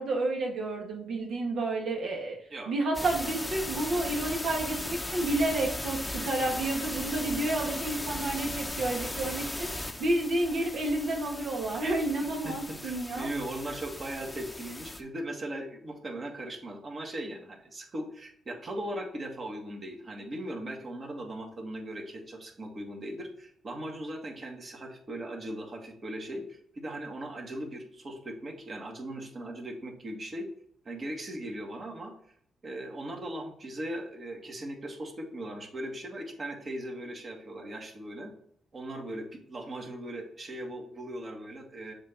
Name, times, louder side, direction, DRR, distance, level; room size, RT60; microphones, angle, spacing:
voice 1, 0.0-2.4 2.7-9.7 10.0-13.3 13.7-13.8, right 2 dB, 70° right, 0 dB, 1.6 m, -30 dB
sound 1, 2.9-15.0, left 1 dB, 15° left, 0.9 m, -37 dB
voice 2, 12.4-30.5 30.9-32.1 32.6-38.3 38.7-41.9, right 1 dB, 45° right, 1 dB, 1.8 m, -39 dB
7.2 x 2.9 x 5.1 m, 0.65 s
supercardioid pair, 55°, 0 cm